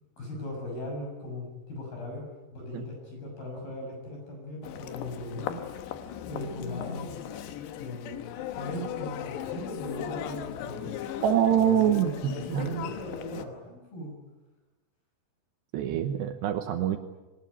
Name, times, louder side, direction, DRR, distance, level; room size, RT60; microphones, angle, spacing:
voice 1, 0.2-5.6 6.2-7.2 7.8-8.2 8.5-11.0 11.5-14.2, left 1 dB, 50° left, 1 dB, 8.3 m, -38 dB
Human voice, 4.6-13.5, left 9 dB, 70° left, 3.1 m, -37 dB
voice 2, 11.2-12.8 15.7-17.0, right 9 dB, 70° right, 7 dB, 2.9 m, -25 dB
23.0 x 19.5 x 10.0 m, 1.1 s
omnidirectional pair, 5.7 m